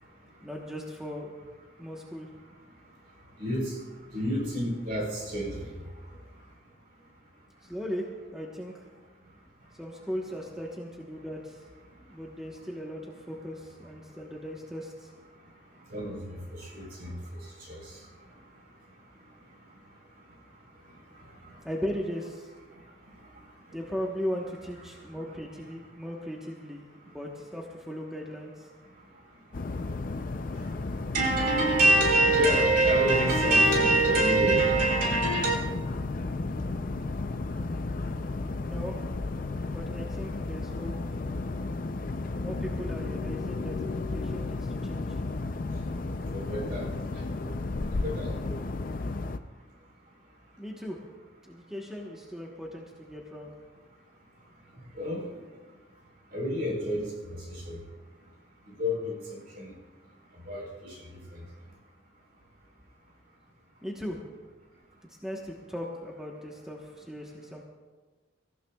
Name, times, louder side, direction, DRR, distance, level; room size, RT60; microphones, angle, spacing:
voice 1, 0.4-1.3 1.8-2.3 7.6-8.8 9.8-11.6 12.0-15.1 21.6-22.5 23.7-28.7 38.6-39.0 39.7-41.4 42.4-45.2 50.6-51.0 51.4-53.5 63.8-64.2 65.1-67.6, equal, 5° right, -2 dB, 1.1 m, -38 dB
voice 2, 3.4-3.7 4.1-5.7 15.9-16.2 16.7-17.1 17.7-17.8 31.1-35.6 46.3-46.9 47.4-47.5 48.0-48.5 55.0-55.2 56.3-57.1 57.5-57.8 58.8-59.1 59.6-59.7 60.5-60.9, right 2 dB, 50° right, -2 dB, 4.2 m, -25 dB
sound 1, 29.5-49.4, left 3 dB, 45° left, 0.5 m, -33 dB
25.0 x 15.0 x 2.4 m, 1.3 s
head